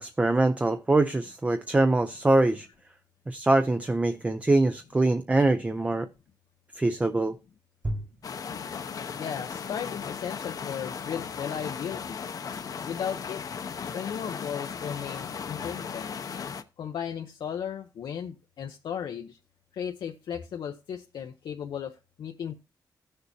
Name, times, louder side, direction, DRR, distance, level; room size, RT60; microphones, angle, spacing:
voice 1, 0.0-2.7 3.3-6.1 6.8-7.4 7.8-8.0, right 2 dB, 20° right, 0.5 m, -24 dB
sound 1, 8.2-16.6, left 6 dB, 55° left, 0.8 m, -36 dB
voice 2, 9.2-12.2 12.8-13.4 13.9-16.1 16.8-19.4 19.7-22.5, left 8 dB, 85° left, 0.8 m, -35 dB
16.5 x 6.7 x 2.7 m
wide cardioid pair, 130°, 8 cm